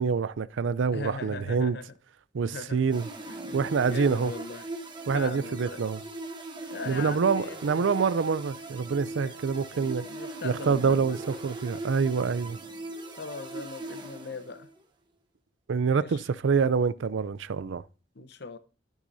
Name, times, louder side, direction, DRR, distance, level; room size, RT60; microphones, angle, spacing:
voice 1, 0.0-1.8 2.3-3.1 3.5-4.3 5.1-6.0 6.9-10.1 10.4-11.2 11.4-12.6 15.7-17.8, right 5 dB, 85° right, 0.4 m, -26 dB
voice 2, 0.9-1.8 2.5-2.8 3.3-3.4 3.8-4.7 5.1-5.8 6.7-7.9 9.2-9.4 9.7-11.2 13.2-14.7 15.9-16.2 18.1-18.6, left 3 dB, 60° left, 0.7 m, -40 dB
sound 1, 2.9-14.8, right 2 dB, 25° right, 1.0 m, -40 dB
13.0 x 6.3 x 2.7 m
head